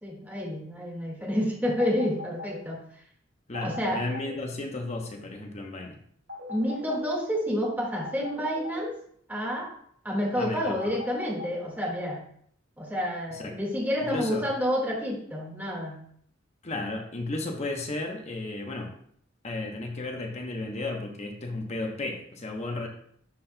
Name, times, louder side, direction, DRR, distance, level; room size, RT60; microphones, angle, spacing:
voice 1, 0.0-2.8 3.6-4.0 6.5-9.0 9.3-9.7 10.0-12.2 12.8-16.0, equal, 10° right, -2 dB, 1.7 m, -29 dB
sound 1, 1.8-2.5 3.5-4.3 6.3-7.0 8.0-8.8 10.8-11.5, left 3 dB, 75° right, 2.7 m, -39 dB
voice 2, 3.5-6.0 10.4-11.0 13.3-13.6 14.0-14.5 16.6-18.9 19.4-22.9, left 2 dB, 35° left, 3 dB, 0.8 m, -34 dB
11.5 x 4.1 x 2.2 m, 0.64 s
head